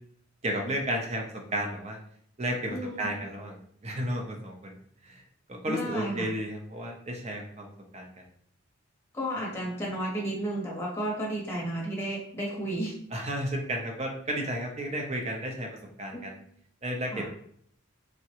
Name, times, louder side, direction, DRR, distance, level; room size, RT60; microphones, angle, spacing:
voice 1, 0.4-2.0 2.4-4.7 5.0-5.2 5.5-7.7 7.9-8.2 13.1-15.7 16.0-16.4 16.8-17.2, right 1 dB, 30° right, 2 dB, 0.5 m, -33 dB
voice 2, 2.7-3.1 5.7-6.3 9.1-12.9 16.1-16.3 17.1-17.2, right 1 dB, 10° left, -3 dB, 0.8 m, -33 dB
3.6 x 2.1 x 2.8 m, 0.64 s
head